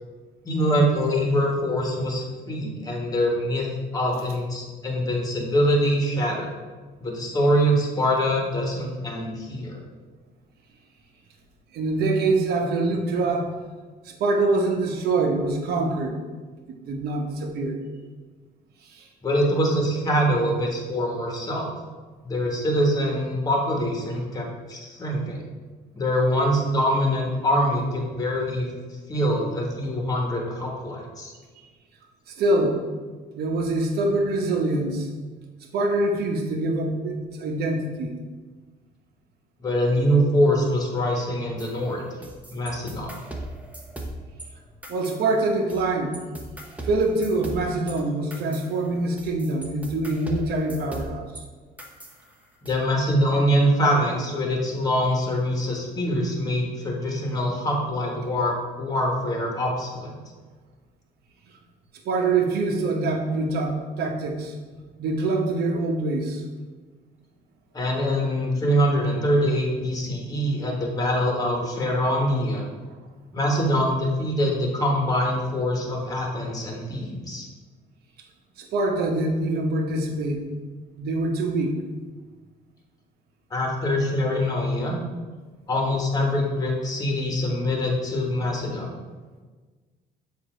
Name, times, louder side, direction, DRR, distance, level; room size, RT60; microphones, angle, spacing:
voice 1, 0.4-3.7 3.9-6.5 7.0-9.8 19.2-21.7 22.2-25.4 25.9-28.7 29.1-31.3 39.6-42.0 42.5-43.1 52.6-60.1 67.7-72.7 73.3-77.5 83.5-84.9 85.7-88.9, equal, 20° left, 0 dB, 1.3 m, -24 dB
voice 2, 11.7-13.6 14.0-16.2 16.8-17.8 18.8-19.0 32.3-32.8 33.3-35.1 35.7-38.1 44.9-46.1 46.8-51.2 62.0-64.6 65.0-66.4 78.6-80.5 81.0-81.7, right 2 dB, 70° right, 2 dB, 1.0 m, -24 dB
sound 1, 41.6-44.5 44.8-45.9 46.1-51.4 51.8-52.7, right 1 dB, 10° right, 0.8 m, -39 dB
7.1 x 2.8 x 4.9 m, 1.4 s
cardioid pair, 110°, 17 cm